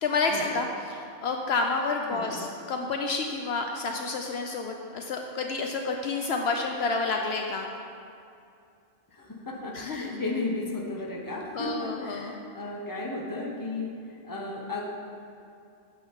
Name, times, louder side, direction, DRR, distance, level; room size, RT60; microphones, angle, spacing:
voice 1, 0.0-7.7 9.7-10.2 11.5-12.4, left 3 dB, 70° left, 2 dB, 0.8 m, -29 dB
voice 2, 9.1-13.9 14.2-14.8, left 2 dB, 20° left, -2 dB, 0.9 m, -34 dB
9.1 x 3.8 x 7.1 m, 2.5 s
omnidirectional pair, 1.2 m